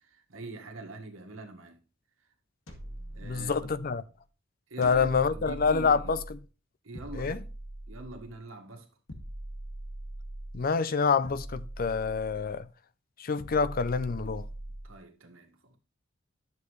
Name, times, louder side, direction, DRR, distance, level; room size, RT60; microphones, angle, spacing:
voice 1, 0.0-1.8 3.1-3.7 4.7-6.1 6.8-7.5 7.9-8.9 14.8-15.8, right 2 dB, 85° right, 1.7 m, -44 dB
sound 1, 2.7-4.0 4.8-6.4 6.9-8.4 9.1-10.7 11.2-12.6 13.4-15.0, right 1 dB, 80° left, 2.0 m, -42 dB
voice 2, 3.2-4.0 4.8-6.2 7.1-7.4 10.5-12.7 13.2-14.5, left 5 dB, 45° left, 0.5 m, -27 dB
11.0 x 6.8 x 3.2 m
head